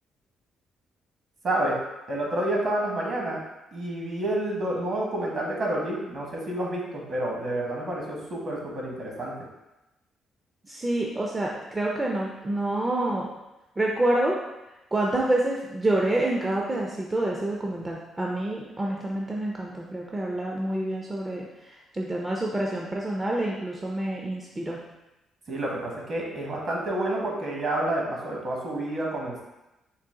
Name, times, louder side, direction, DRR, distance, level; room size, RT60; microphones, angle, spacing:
voice 1, 1.4-1.8 2.1-3.4 3.7-9.3 25.5-29.4, right 1 dB, 50° right, -2 dB, 1.2 m, -29 dB
voice 2, 10.7-13.4 13.8-14.4 14.9-24.8, right 1 dB, 20° right, -2 dB, 0.5 m, -27 dB
3.9 x 2.4 x 3.6 m, 0.99 s
cardioid pair, 90°, 0 cm